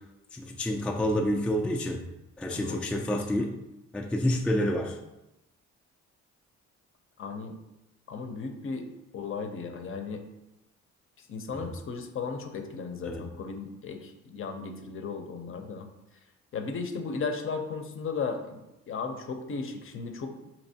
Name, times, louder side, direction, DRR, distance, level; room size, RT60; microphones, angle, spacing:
voice 1, 0.3-2.0 2.4-3.5 3.9-5.0 11.5-11.7 13.1-13.2, left 1 dB, 5° left, 2 dB, 0.3 m, -28 dB
voice 2, 2.5-3.1 7.2-7.5 8.1-8.9 9.1-10.2 11.2-15.9 16.5-18.6 18.9-20.5, left 5 dB, 45° left, 5 dB, 0.6 m, -35 dB
4.3 x 2.9 x 2.7 m, 0.94 s
cardioid pair, 90°, 29 cm